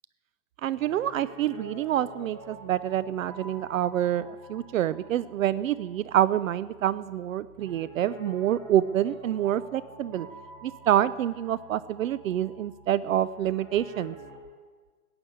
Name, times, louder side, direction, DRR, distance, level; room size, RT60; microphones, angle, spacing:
voice 1, 0.6-10.3 10.6-14.2, right 11 dB, 65° right, 17 dB, 0.6 m, -27 dB
Piano, 0.7-14.4, right 1 dB, 30° right, 4.4 m, -47 dB
14.5 x 8.9 x 8.1 m, 1.5 s
hypercardioid pair, 125°, 43 cm